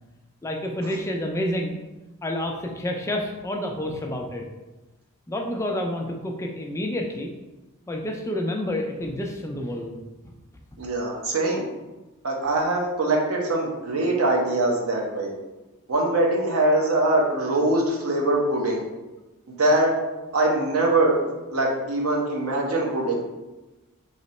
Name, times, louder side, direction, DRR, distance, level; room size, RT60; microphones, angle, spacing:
voice 1, 0.4-1.8 2.2-4.4 5.3-7.3 7.9-10.0 10.2-10.3, left 1 dB, 15° left, 1 dB, 0.3 m, -29 dB
voice 2, 10.8-11.6 12.2-15.3 15.9-18.8 19.6-19.9 20.3-21.2 21.5-23.2, right 2 dB, 80° right, -1 dB, 0.8 m, -22 dB
3.2 x 2.9 x 4.1 m, 1.1 s
head